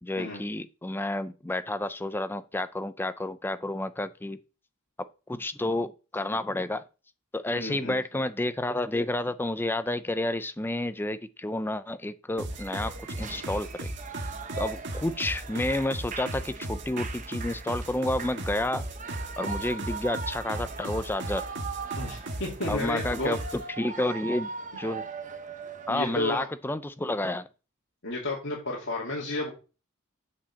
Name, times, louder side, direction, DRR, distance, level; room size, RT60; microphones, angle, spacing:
voice 1, 0.0-4.4 5.0-6.8 7.3-13.9 14.6-18.9 19.4-21.5 22.7-24.5 24.8-25.1 25.9-27.5, left 1 dB, 10° left, 0.4 m, -30 dB
voice 2, 7.5-8.0 22.0-23.4 25.9-26.5 28.0-29.5, left 2 dB, 60° left, 2.5 m, -32 dB
sound 1, 12.4-23.6, right 1 dB, 55° right, 1.5 m, -36 dB
Shout / Cheering, 12.5-26.3, right 5 dB, 35° right, 1.0 m, -40 dB
8.6 x 4.8 x 7.1 m
head